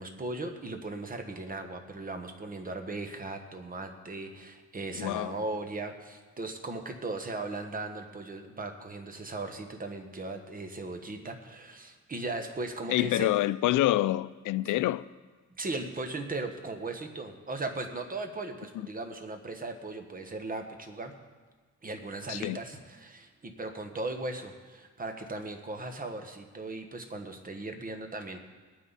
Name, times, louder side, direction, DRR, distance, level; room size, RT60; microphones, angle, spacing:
voice 1, 0.0-13.3 15.6-21.1 21.8-28.4, right 2 dB, 25° right, 1.4 m, -38 dB
voice 2, 5.0-5.3 12.9-15.0 22.3-22.6, left 15 dB, 75° left, 0.5 m, -27 dB
20.5 x 9.4 x 4.2 m
cardioid pair, 115°, 31 cm